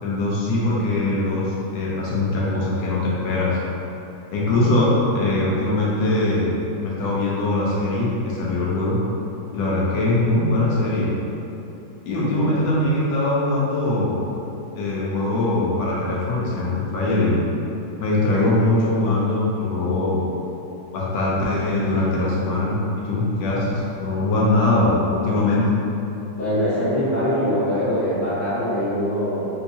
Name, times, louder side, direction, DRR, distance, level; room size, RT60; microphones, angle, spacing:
voice 1, 0.0-3.6 4.3-6.5 6.8-9.0 9.5-11.1 12.1-14.2 14.7-17.4 18.0-20.2 20.9-25.6, left 2 dB, 70° left, -5 dB, 1.2 m, -21 dB
voice 2, 26.4-29.5, equal, 20° left, -14 dB, 1.1 m, -23 dB
3.5 x 2.8 x 2.7 m, 2.9 s
omnidirectional pair, 2.2 m